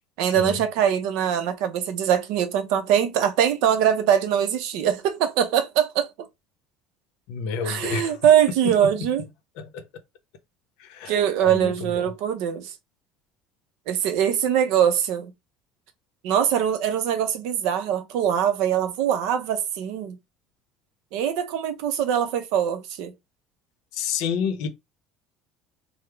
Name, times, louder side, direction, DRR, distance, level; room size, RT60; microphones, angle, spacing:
voice 1, 0.2-6.1 7.6-9.2 11.1-12.7 13.9-15.3 16.2-20.2 21.1-23.1, right 9 dB, 70° right, 0.6 m, -22 dB
voice 2, 7.3-8.2 8.6-8.7 9.6-9.8 10.8-12.1 23.9-24.7, left 6 dB, 70° left, 0.6 m, -30 dB
3.3 x 2.0 x 3.3 m
cardioid pair, 175°, 0 cm